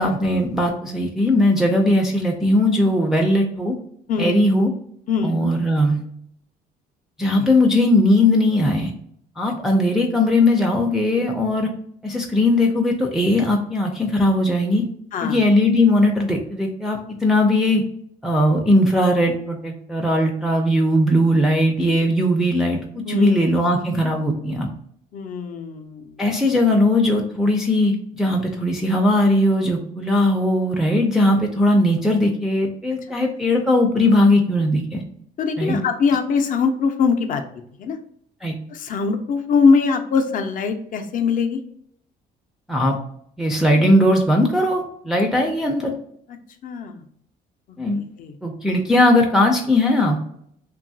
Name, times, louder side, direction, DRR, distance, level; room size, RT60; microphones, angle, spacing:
voice 1, 0.0-3.8 4.2-4.7 5.2-6.0 7.2-8.9 9.4-11.7 12.0-14.8 15.2-17.8 18.2-24.7 26.2-35.0 35.6-35.8 38.4-38.5 42.7-43.0 43.4-45.9 47.8-48.0 48.4-50.2, left 1 dB, 5° right, 0 dB, 0.4 m, -19 dB
voice 2, 4.1-4.4 5.1-5.4 11.2-11.3 15.1-15.4 23.1-23.4 25.1-26.0 35.4-37.4 37.8-38.0 38.7-41.6 46.6-47.0 47.9-48.3, left 5 dB, 50° left, 6 dB, 0.5 m, -22 dB
2.9 x 2.3 x 2.6 m, 0.68 s
cardioid pair, 110°, 17 cm